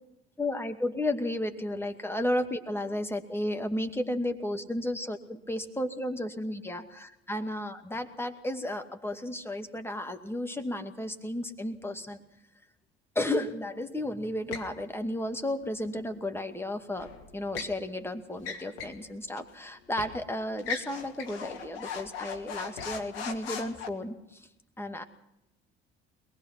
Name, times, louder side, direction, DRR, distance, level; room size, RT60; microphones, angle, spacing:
voice 1, 0.4-12.2 13.2-24.5 24.8-25.0, left 1 dB, 10° left, 5 dB, 2.2 m, -33 dB
sound 1, 14.5-14.7 16.9-17.8 18.4-19.0 19.4-19.5 20.0-20.2 20.6-23.9, left 6 dB, 75° left, 1.7 m, -38 dB
22.0 x 20.0 x 6.0 m, 0.87 s
figure-of-eight pair, 55°, 30 cm